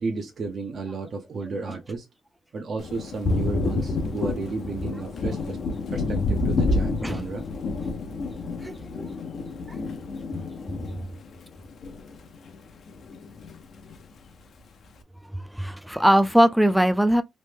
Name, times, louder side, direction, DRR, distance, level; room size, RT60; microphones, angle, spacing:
voice 1, 0.0-2.1 2.5-5.6 5.9-7.4, right 4 dB, 50° right, 0.6 m, -33 dB
Thunder, 2.8-12.6 12.9-14.0, left 3 dB, 55° left, 0.6 m, -29 dB
voice 2, 8.6-9.1 9.7-9.8 15.3-17.2, equal, ahead, 0.4 m, -21 dB
3.0 x 2.1 x 3.3 m
cardioid pair, 90°, 0 cm